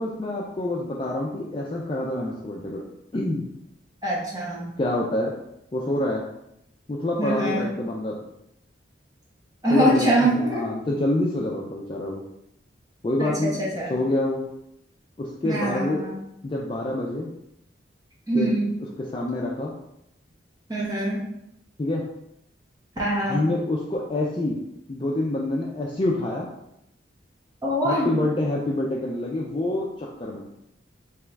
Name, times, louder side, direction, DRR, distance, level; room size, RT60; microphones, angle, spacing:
voice 1, 0.0-2.8 3.1-3.5 4.8-5.3 5.7-6.2 6.9-8.2 9.7-12.2 13.0-13.6 13.9-14.5 15.2-16.1 16.4-17.3 18.3-18.5 19.0-19.7 21.8-22.1 23.2-24.6 24.9-26.5 27.8-30.4, left 1 dB, 25° left, -3 dB, 0.4 m, -27 dB
voice 2, 4.0-4.7 7.2-7.7 9.6-10.6 13.2-13.3 13.7-13.9 15.4-16.1 18.3-18.8 20.7-21.2 23.0-23.4 27.6-28.1, right 1 dB, 20° right, -5 dB, 0.7 m, -23 dB
3.5 x 3.0 x 3.3 m, 0.80 s
head